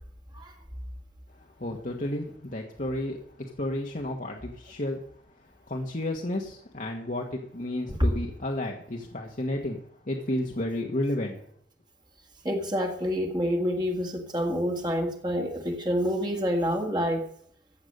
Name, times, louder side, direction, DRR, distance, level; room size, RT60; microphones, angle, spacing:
voice 1, 1.6-3.2 3.6-5.0 5.7-9.8 10.1-11.4, left 1 dB, 45° left, 0 dB, 1.4 m, -31 dB
voice 2, 12.5-17.2, equal, 25° right, 2 dB, 1.8 m, -28 dB
14.5 x 8.0 x 6.6 m, 0.64 s
head